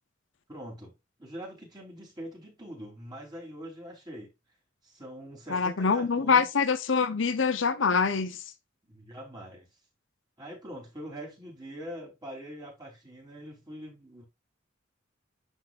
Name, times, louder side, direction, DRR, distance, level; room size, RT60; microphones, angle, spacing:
voice 1, 0.5-0.9 1.2-4.3 4.8-6.5 8.9-9.7 10.4-14.2, equal, 20° right, 3.8 m, -43 dB
voice 2, 5.5-8.4, left 5 dB, 80° left, 0.8 m, -25 dB
11.0 x 4.6 x 2.5 m
head